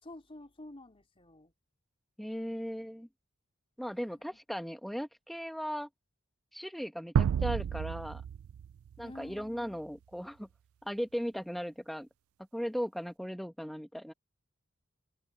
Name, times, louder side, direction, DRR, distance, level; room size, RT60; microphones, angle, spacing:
voice 1, 0.0-1.5 3.9-4.4 9.0-9.8, left 1 dB, 25° left, 4.1 m, -50 dB
voice 2, 2.2-3.1 3.8-5.9 6.5-8.2 9.0-10.5 10.8-12.1 12.5-14.1, equal, ahead, 1.2 m, -37 dB
sound 1, 7.2-9.6, right 8 dB, 85° right, 0.3 m, -31 dB
open air
head